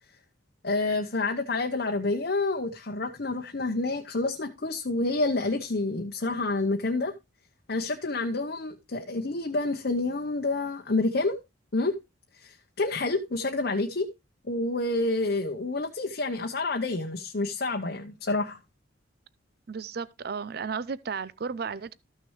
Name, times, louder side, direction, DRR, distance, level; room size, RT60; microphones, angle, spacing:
voice 1, 0.6-7.1 7.7-11.4 11.7-12.0 12.4-14.1 14.4-18.6, left 2 dB, 50° left, 0.8 m, -28 dB
voice 2, 19.7-21.9, right 5 dB, 50° right, 0.4 m, -34 dB
13.5 x 6.3 x 3.1 m
head